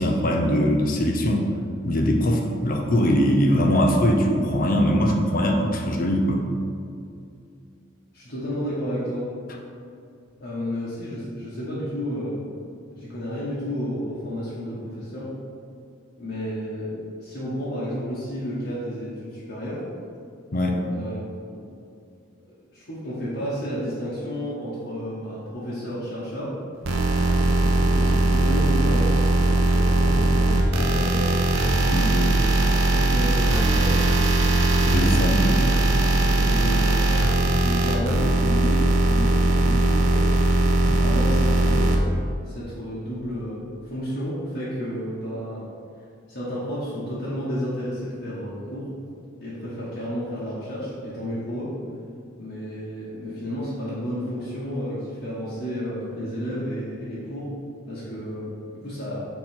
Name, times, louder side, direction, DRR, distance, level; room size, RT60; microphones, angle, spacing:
voice 1, 0.0-1.5 1.8-6.4 20.5-20.8 31.9-32.1 34.9-35.6, equal, 45° left, 2 dB, 0.6 m, -21 dB
voice 2, 8.1-9.3 10.4-12.4 12.9-15.3 16.2-16.9 17.2-19.8 20.9-21.2 21.4-21.6 22.7-26.5 27.6-29.1 29.5-31.3 31.9-33.9 34.8-35.6 36.5-40.3 41.0-42.1 42.5-45.6 46.3-48.9 49.4-51.7 52.4-57.5 57.8-58.5 58.7-59.3, equal, 60° left, -11 dB, 1.2 m, -31 dB
sound 1, 26.9-42.0, right 2 dB, 80° right, 0.7 m, -20 dB
5.7 x 4.0 x 4.4 m, 2.4 s
head